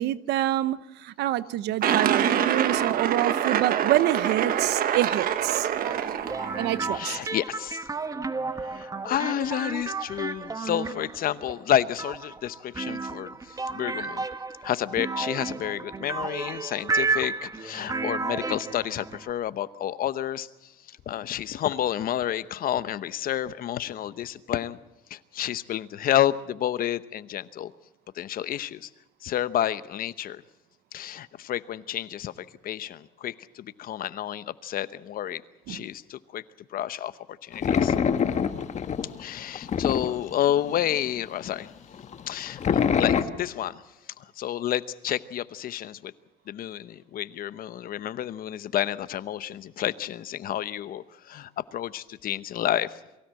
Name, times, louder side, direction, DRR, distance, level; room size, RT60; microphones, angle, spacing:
voice 1, 0.0-5.7 6.6-7.2 35.7-35.9, right 14 dB, 80° right, 16 dB, 0.8 m, -26 dB
sound 1, 1.8-6.8, right 9 dB, 60° right, 1.4 m, -25 dB
sound 2, 5.8-19.3, right 4 dB, 20° right, 1.1 m, -32 dB
voice 2, 6.9-7.8 8.6-14.2 14.6-20.5 21.1-24.8 25.1-27.7 28.1-28.9 29.2-30.4 30.9-35.4 35.7-36.4 36.7-37.1 37.4-37.9 39.2-41.7 42.3-43.8 44.4-46.1 46.5-52.9, left 11 dB, 60° left, 15 dB, 0.9 m, -30 dB
sound 3, 37.5-40.8 41.2-41.3 41.5-41.6 41.9-43.2, left 7 dB, 45° left, 1.4 m, -25 dB
23.5 x 16.0 x 7.7 m, 0.97 s
cardioid pair, 110°, 17 cm